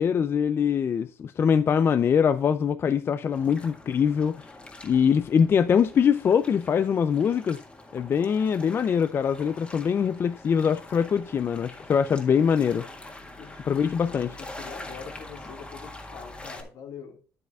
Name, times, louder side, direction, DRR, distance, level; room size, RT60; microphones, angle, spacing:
voice 1, 0.0-4.5 4.8-7.6 7.9-12.9 13.7-14.3, left 7 dB, 40° left, 0.4 m, -23 dB
sound 1, 3.3-16.6, left 2 dB, 15° left, 1.7 m, -44 dB
voice 2, 13.4-17.2, left 6 dB, 70° left, 2.0 m, -44 dB
8.9 x 8.3 x 2.4 m
cardioid pair, 115°, 7 cm